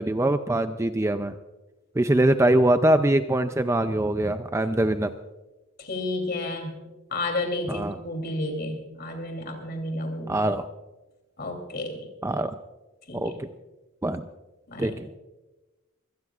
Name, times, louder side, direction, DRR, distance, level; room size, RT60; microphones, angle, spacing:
voice 1, 0.0-1.3 2.0-5.1 7.7-8.0 10.3-10.7 12.2-12.5 13.1-13.5 14.0-14.3 14.8-15.1, right 1 dB, 15° right, 9 dB, 0.4 m, -23 dB
voice 2, 5.8-6.8 7.1-10.4 11.4-12.1 13.1-13.4 14.7-15.0, left 2 dB, 45° left, 4 dB, 3.1 m, -31 dB
24.5 x 17.5 x 2.4 m, 1.1 s
head